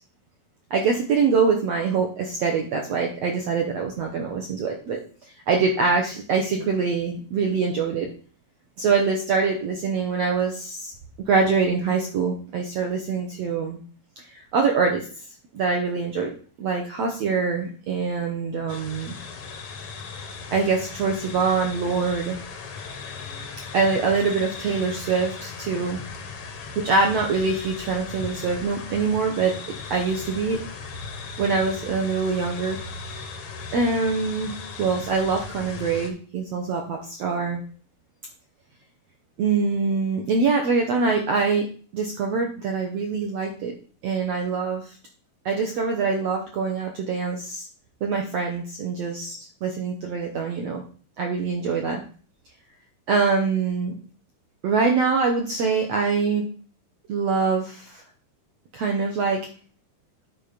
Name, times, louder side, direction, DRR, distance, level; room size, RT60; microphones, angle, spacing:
voice 1, 0.7-5.0 5.5-8.1 8.8-10.9 11.3-13.8 14.5-15.0 15.5-16.3 16.6-19.2 20.5-22.4 23.7-26.0 26.8-29.6 29.9-30.6 31.4-32.8 33.7-34.5 34.8-37.6 39.4-41.6 41.9-43.7 44.0-44.8 45.4-47.7 48.0-50.8 51.2-52.0 53.1-54.0 54.6-56.5 57.1-58.0 58.7-59.4, right 4 dB, 75° right, 2 dB, 1.4 m, -24 dB
sound 1, 18.7-36.1, left 5 dB, 85° left, 1.2 m, -37 dB
10.0 x 4.5 x 5.1 m, 0.41 s
omnidirectional pair, 4.4 m